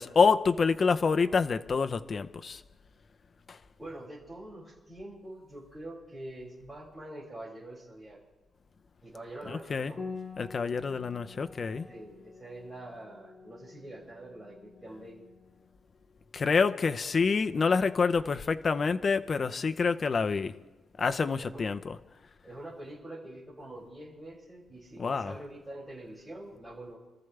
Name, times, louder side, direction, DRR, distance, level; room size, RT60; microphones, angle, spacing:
voice 1, 0.0-2.6 3.5-3.6 9.7-9.9 10.4-11.9 16.3-20.5 21.0-22.0 25.0-25.3, left 5 dB, 30° left, 0.7 m, -27 dB
voice 2, 3.8-8.2 9.0-10.0 11.9-15.2 21.4-21.7 22.4-27.0, right 1 dB, 10° right, 6.1 m, -45 dB
Piano, 10.0-19.3, left 4 dB, 15° left, 5.5 m, -49 dB
27.5 x 14.0 x 3.4 m
wide cardioid pair, 170°, 0 cm